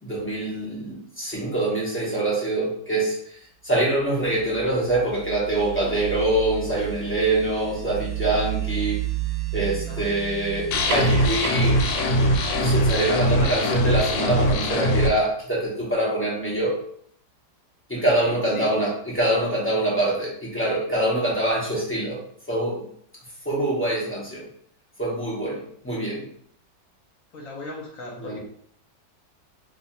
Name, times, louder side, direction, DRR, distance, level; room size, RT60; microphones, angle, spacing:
voice 1, 0.0-3.2 3.6-9.0 9.5-11.9 12.6-16.7 17.9-22.2 22.5-22.8 23.4-24.4 25.0-26.2 28.2-28.4, right 1 dB, 20° left, -5 dB, 0.3 m, -24 dB
sound 1, 4.3-14.7, right 15 dB, 60° right, 0.8 m, -33 dB
sound 2, 10.6-15.5, right 4 dB, 80° right, 1.3 m, -38 dB
sound 3, 10.7-15.1, equal, 90° left, 1.2 m, -21 dB
voice 2, 18.1-18.7 27.3-28.4, left 2 dB, 60° left, -1 dB, 1.1 m, -37 dB
2.8 x 2.4 x 4.1 m, 0.62 s
omnidirectional pair, 1.9 m